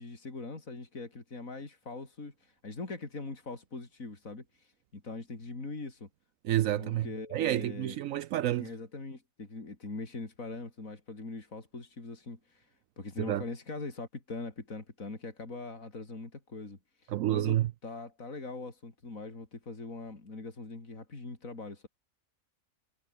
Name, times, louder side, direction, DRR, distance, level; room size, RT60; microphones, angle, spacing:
voice 1, 0.0-6.1 6.7-8.0 8.6-12.7 13.0-21.9, left 3 dB, 70° left, 4.2 m, -42 dB
voice 2, 6.4-8.7 13.3-13.4 17.1-17.7, right 13 dB, 75° right, 1.0 m, -29 dB
omnidirectional pair, 1.5 m